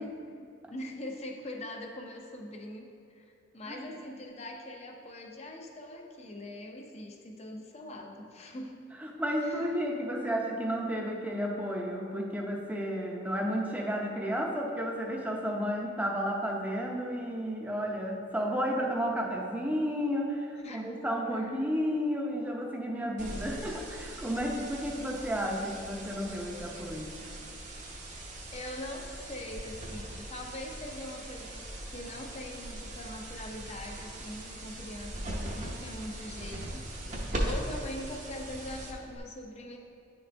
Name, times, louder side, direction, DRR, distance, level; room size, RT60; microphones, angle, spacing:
voice 1, 0.0-8.9 9.4-9.7 20.6-21.0 21.3-21.5 28.5-36.8 37.4-39.8, left 1 dB, 35° left, 2 dB, 0.6 m, -42 dB
voice 2, 9.0-27.3, equal, 10° right, -1 dB, 0.6 m, -32 dB
sound 1, 23.2-39.2, right 1 dB, 40° right, 0.8 m, -40 dB
9.8 x 4.0 x 3.3 m, 2.7 s
head